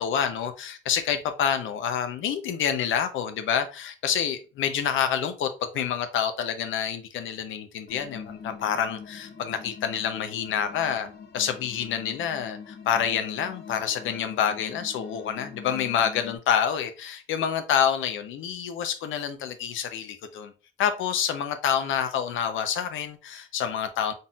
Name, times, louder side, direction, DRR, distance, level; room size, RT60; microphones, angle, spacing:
voice 1, 0.0-11.1 11.3-20.5 20.8-24.1, left 8 dB, 80° left, 0.8 m, -27 dB
sound 1, 7.9-16.4, left 6 dB, 50° left, 0.8 m, -43 dB
4.0 x 3.9 x 2.4 m
cardioid pair, 90°, 20 cm